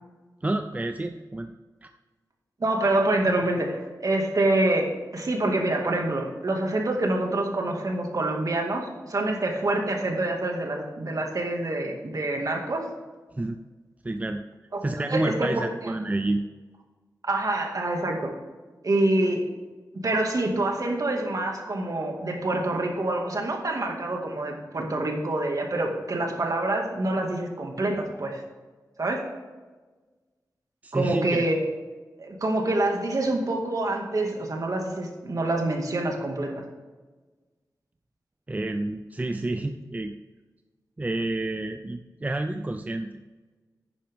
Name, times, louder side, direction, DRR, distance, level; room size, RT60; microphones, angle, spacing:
voice 1, 0.4-1.5 1.8-1.9 13.3-13.6 14.0-14.4 14.8-16.5 30.8-31.5 38.5-40.1 41.0-43.2, right 2 dB, 20° right, 7 dB, 0.5 m, -29 dB
voice 2, 2.6-12.8 15.1-15.9 17.2-18.3 18.8-19.4 20.0-28.4 29.0-29.2 30.9-31.6 32.2-36.7, right 2 dB, 55° right, 2 dB, 2.1 m, -26 dB
11.0 x 9.6 x 3.6 m, 1.3 s
wide cardioid pair, 80°, 7 cm